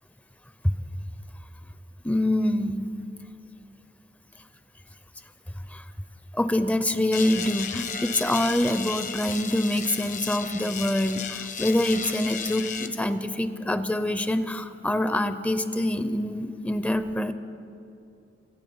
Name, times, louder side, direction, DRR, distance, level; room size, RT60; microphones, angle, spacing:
voice 1, 2.0-2.9 5.7-5.8 6.3-17.3, left 1 dB, 10° left, 11 dB, 0.5 m, -25 dB
sound 1, 7.1-12.9, left 7 dB, 45° left, 0.8 m, -34 dB
26.0 x 9.0 x 5.5 m, 2.6 s
head